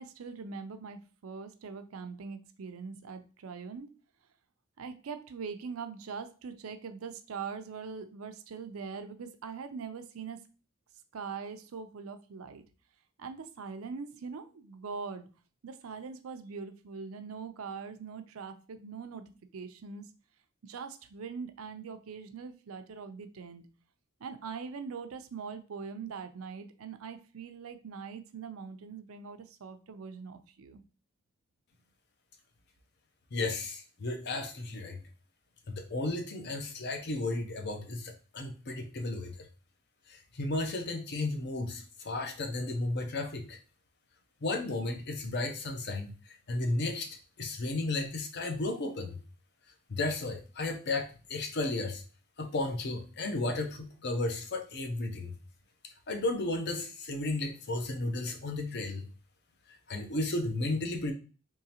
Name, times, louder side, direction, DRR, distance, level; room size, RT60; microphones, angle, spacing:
voice 1, 0.0-3.9 4.8-10.5 11.1-12.6 13.2-15.3 15.6-20.1 20.6-23.7 24.2-30.8, right 5 dB, 85° right, 9 dB, 0.5 m, -42 dB
voice 2, 33.3-35.0 35.7-39.3 40.1-43.6 44.4-46.1 46.5-47.1 47.4-49.2 49.9-52.0 52.4-55.4 56.1-59.0 59.9-61.1, left 2 dB, 55° left, 5 dB, 0.7 m, -33 dB
3.7 x 3.0 x 2.8 m, 0.35 s
head